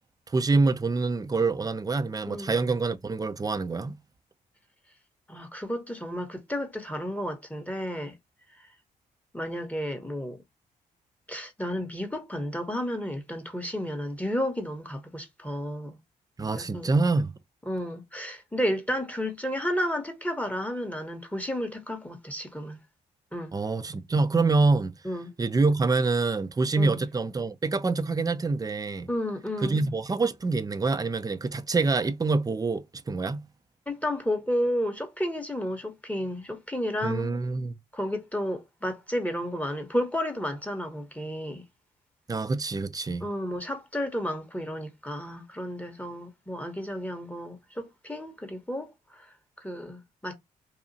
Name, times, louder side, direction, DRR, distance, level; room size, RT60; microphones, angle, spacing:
voice 1, 0.3-4.0 16.4-17.4 23.5-24.9 25.4-29.1 29.6-33.5 37.0-37.7 42.3-43.3, right 3 dB, 20° right, 0.4 m, -26 dB
voice 2, 2.3-2.6 5.3-8.2 9.3-10.4 11.3-16.0 16.5-16.9 17.7-22.8 23.3-23.6 25.0-25.3 26.8-27.0 29.1-29.8 33.9-37.4 37.9-41.6 43.2-49.3 49.6-50.4, equal, 10° left, 0.8 m, -32 dB
2.8 x 2.3 x 2.6 m
supercardioid pair, 50°, 18 cm